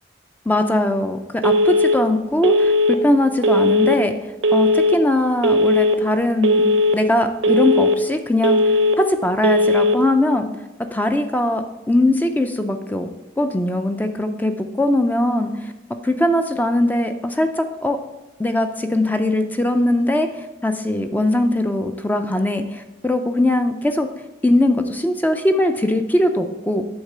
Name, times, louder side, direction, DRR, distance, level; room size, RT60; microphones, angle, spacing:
voice 1, 0.5-4.2 4.5-6.7 6.9-8.6 9.0-10.5 10.9-13.1 13.4-15.7 16.0-18.0 18.4-24.1 24.4-26.8, left 1 dB, 10° left, 7 dB, 0.3 m, -20 dB
Telephone, 1.4-2.0 2.4-3.0 3.4-4.0 4.4-5.0 5.4-6.0 6.4-7.0 7.4-8.0 8.4-9.0 9.4-10.0, left 1 dB, 80° right, 0.7 m, -17 dB
8.0 x 3.6 x 6.6 m, 1.1 s
head